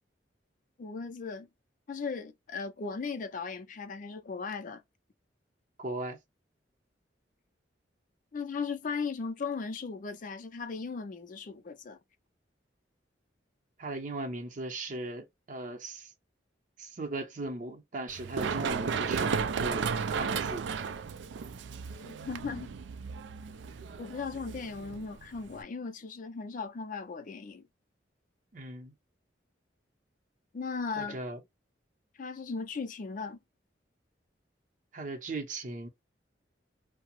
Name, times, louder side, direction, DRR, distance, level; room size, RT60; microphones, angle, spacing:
voice 1, 0.8-1.5 1.9-4.8 8.3-12.0 22.0-22.7 24.0-27.6 30.5-31.2 32.1-33.4, left 5 dB, 45° left, 0.4 m, -37 dB
voice 2, 5.8-6.2 13.8-16.1 16.8-20.7 28.5-28.9 31.0-31.4 34.9-35.9, right 2 dB, 45° right, 0.7 m, -38 dB
Run, 18.1-25.6, right 6 dB, 75° right, 0.3 m, -34 dB
2.8 x 2.0 x 2.9 m
head